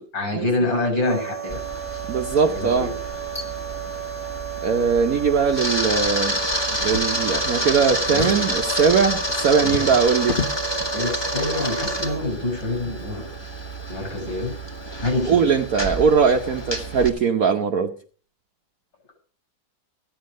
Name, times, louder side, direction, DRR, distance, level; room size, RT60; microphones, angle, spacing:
voice 1, 0.1-1.6 2.5-2.9 8.1-8.4 9.6-9.8 10.9-13.3 13.9-14.6 15.0-15.5, left 2 dB, 75° left, 3 dB, 7.3 m, -26 dB
sound 1, 1.0-12.2, right 9 dB, 20° right, 1.1 m, -34 dB
Camera, 1.5-17.1, equal, 15° left, 1.8 m, -29 dB
voice 2, 2.1-2.9 4.6-6.4 6.8-10.4 15.3-17.9, right 6 dB, 55° right, 4 dB, 1.2 m, -20 dB
Drawer open or close, 6.7-7.7 8.0-10.7 11.5-11.7 12.1-12.2, left 5 dB, 35° left, 0.9 m, -33 dB
15.5 x 10.5 x 5.1 m, 0.41 s
omnidirectional pair, 2.1 m